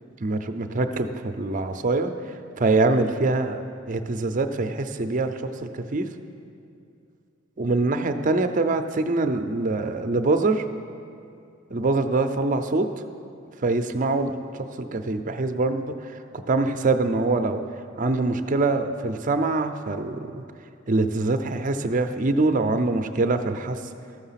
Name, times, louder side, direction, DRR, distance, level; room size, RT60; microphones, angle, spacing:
voice 1, 0.2-2.1 2.6-6.1 7.6-10.6 11.7-12.9 13.6-14.3 14.6-15.9 16.3-17.6 18.0-20.4 20.9-23.8, right 3 dB, 40° right, 8 dB, 0.5 m, -24 dB
13.5 x 6.5 x 5.7 m, 2.5 s
head